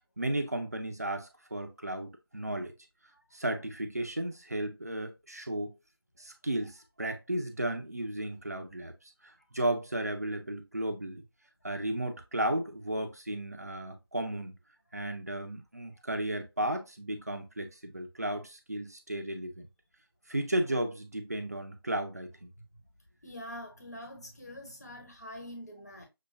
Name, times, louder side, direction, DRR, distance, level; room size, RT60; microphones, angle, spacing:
voice 1, 0.2-2.7 3.3-5.7 6.2-8.9 9.2-11.2 11.6-14.6 14.9-19.7 20.3-22.5, right 1 dB, 40° right, 0.7 m, -34 dB
voice 2, 23.2-26.1, left 1 dB, 40° left, 1.4 m, -44 dB
6.6 x 2.9 x 2.2 m
figure-of-eight pair, 170°, 13 cm